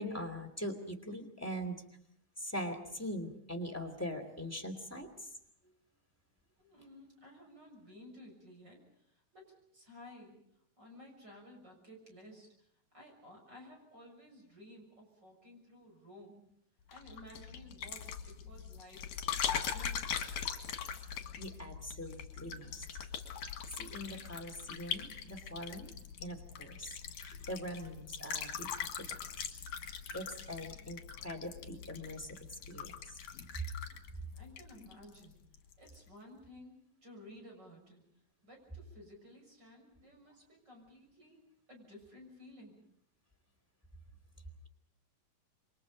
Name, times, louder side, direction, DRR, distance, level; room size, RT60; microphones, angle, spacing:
voice 1, 0.0-1.8 2.4-5.3 21.4-22.8 23.8-25.9 26.2-26.9 27.2-29.5 30.1-33.2, equal, 5° left, 6 dB, 2.2 m, -42 dB
voice 2, 6.6-10.4 10.8-12.5 12.9-16.4 16.9-19.1 19.4-20.0 34.3-35.5 35.8-38.0 38.4-41.4 41.7-42.8, left 1 dB, 30° right, 2 dB, 7.1 m, -55 dB
sound 1, 16.9-35.2 35.5-36.0, left 8 dB, 75° left, 3.3 m, -41 dB
28.0 x 23.5 x 5.3 m, 0.73 s
omnidirectional pair, 3.7 m